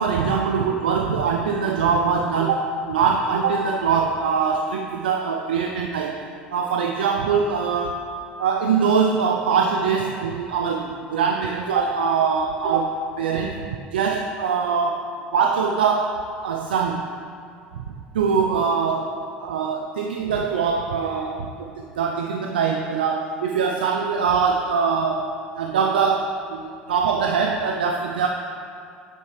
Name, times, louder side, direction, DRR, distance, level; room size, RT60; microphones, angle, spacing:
voice 1, 0.0-6.2 6.5-8.1 8.4-17.1 18.1-28.3, right 5 dB, 85° right, 2 dB, 0.5 m, -23 dB
9.4 x 7.8 x 3.2 m, 2.3 s
hypercardioid pair, 75°, 5 cm